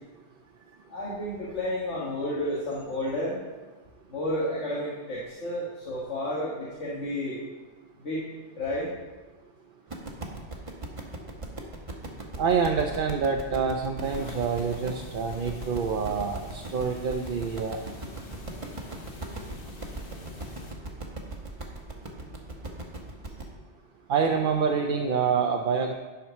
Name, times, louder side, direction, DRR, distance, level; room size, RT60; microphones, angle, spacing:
voice 1, 0.9-3.4 4.1-7.4 8.0-8.2 8.6-8.9, left 1 dB, 80° left, -7 dB, 2.0 m, -31 dB
sound 1, 9.9-23.5, right 2 dB, 30° right, 1.1 m, -39 dB
voice 2, 12.4-17.8 24.1-25.9, right 6 dB, 55° right, 3 dB, 0.7 m, -26 dB
sound 2, 14.0-20.7, left 2 dB, 50° left, 1.2 m, -46 dB
11.0 x 4.8 x 5.7 m, 1.2 s
omnidirectional pair, 1.2 m